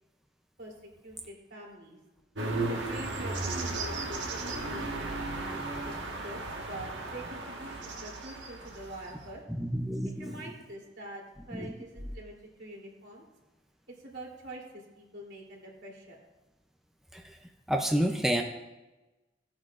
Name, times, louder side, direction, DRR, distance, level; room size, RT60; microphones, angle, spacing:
voice 1, 1.0-2.0 2.7-6.4 6.7-9.4 10.0-12.3 12.6-13.2 14.0-16.2, right 1 dB, 65° right, -3 dB, 3.3 m, -45 dB
sound 1, 2.4-9.3, right 2 dB, 85° right, 1.5 m, -35 dB
voice 2, 9.6-10.5 11.5-11.7 17.1-17.2 17.7-18.4, equal, ahead, 2 dB, 0.5 m, -29 dB
17.0 x 8.8 x 2.5 m, 1.1 s
head